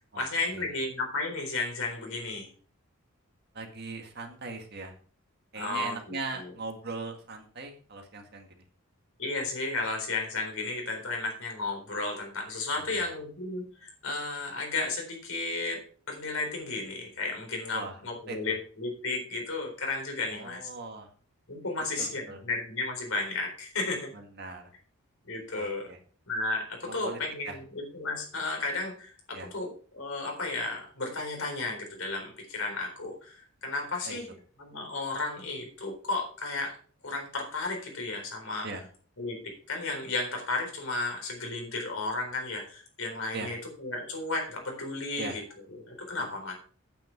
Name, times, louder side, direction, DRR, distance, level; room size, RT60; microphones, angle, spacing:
voice 1, 0.1-2.5 5.5-6.5 9.2-15.8 16.1-20.7 21.5-24.1 25.3-25.9 26.3-34.3 34.6-36.8 37.0-38.7 39.2-39.4 39.7-45.4 45.7-46.6, left 3 dB, 70° left, 1 dB, 4.1 m, -33 dB
voice 2, 3.5-4.9 5.5-8.5 12.9-13.1 17.7-17.9 18.3-18.4 20.3-21.1 22.0-22.4 24.4-24.7 25.5-26.0 26.9-27.2 27.4-27.5 29.3-29.5 34.1-34.2 38.6-38.8 43.3-43.5 45.2-45.4 46.2-46.3, right 3 dB, 45° right, 4 dB, 1.9 m, -39 dB
9.1 x 9.1 x 4.6 m, 0.43 s
head